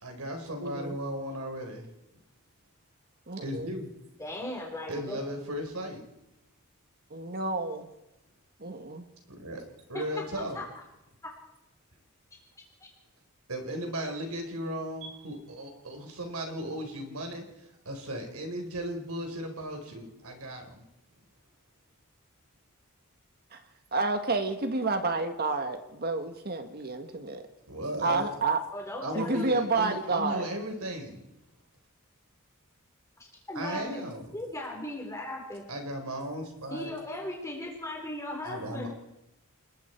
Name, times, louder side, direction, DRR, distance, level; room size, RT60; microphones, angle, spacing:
voice 1, 0.0-1.9 3.4-3.9 4.9-6.0 9.3-10.6 13.5-20.8 27.7-28.3 29.0-31.3 33.5-34.3 35.7-36.9 38.4-38.9, equal, 90° right, 4 dB, 4.3 m, -36 dB
voice 2, 0.6-1.0 3.3-3.7 7.1-7.9 8.6-9.1 23.5-23.6 23.9-27.4 28.0-28.6 29.2-30.5, right 3 dB, 45° right, 7 dB, 1.6 m, -30 dB
voice 3, 4.2-5.2 9.9-10.0 10.5-10.6 14.1-14.2 28.7-29.5 33.5-34.0 34.3-35.6 36.7-38.9, left 1 dB, 15° left, -1 dB, 4.1 m, -37 dB
29.5 x 20.5 x 4.5 m, 0.92 s
head